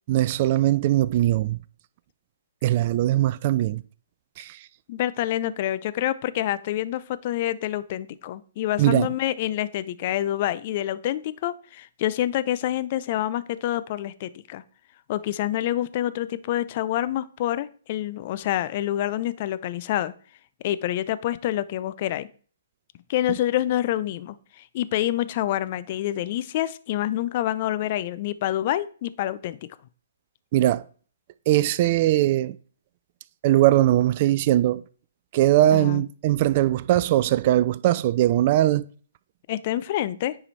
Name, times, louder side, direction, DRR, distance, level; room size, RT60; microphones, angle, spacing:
voice 1, 0.1-1.6 2.6-3.8 4.4-4.6 8.8-9.1 30.5-30.8 31.5-32.6 33.4-34.8 35.3-38.8, right 14 dB, 40° right, 0.4 m, -20 dB
voice 2, 4.9-14.6 15.1-20.1 20.6-22.3 23.1-29.7 35.7-36.0 39.5-40.4, left 13 dB, 40° left, 0.6 m, -27 dB
9.8 x 4.9 x 4.2 m
hypercardioid pair, 135°, 0 cm